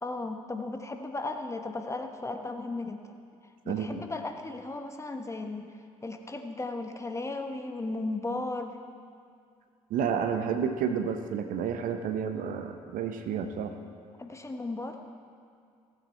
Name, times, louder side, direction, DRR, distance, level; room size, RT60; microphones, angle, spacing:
voice 1, 0.0-3.0 3.6-5.7 6.0-8.8 14.2-15.0, left 2 dB, 15° left, 5 dB, 1.4 m, -35 dB
voice 2, 3.7-4.0 9.9-13.8, right 7 dB, 50° right, 7 dB, 1.0 m, -30 dB
16.0 x 15.0 x 4.4 m, 2.3 s
figure-of-eight pair, 50°, 17 cm